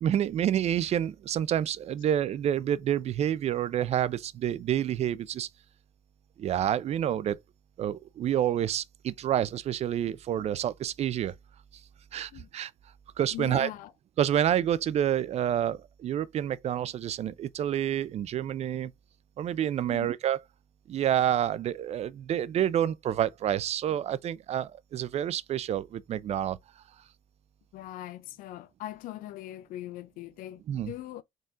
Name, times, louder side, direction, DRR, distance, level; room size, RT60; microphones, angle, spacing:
voice 1, 0.0-5.5 6.4-7.4 7.8-11.3 12.1-12.7 13.2-13.7 14.2-18.9 19.4-20.4 20.9-26.6 30.7-30.9, right 10 dB, 45° right, 0.4 m, -28 dB
voice 2, 13.3-13.9 19.9-20.1 27.7-31.2, left 14 dB, 70° left, 0.4 m, -41 dB
4.0 x 3.7 x 2.4 m
supercardioid pair, 90°, 15 cm